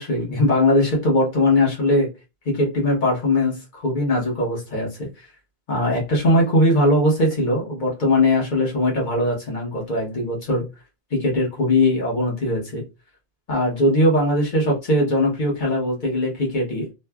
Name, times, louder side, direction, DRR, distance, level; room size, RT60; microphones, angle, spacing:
voice 1, 0.0-2.1 2.4-5.2 5.7-10.6 11.1-12.8 13.5-16.9, left 1 dB, 50° left, 1.1 m, -20 dB
3.1 x 2.1 x 2.2 m
omnidirectional pair, 1.1 m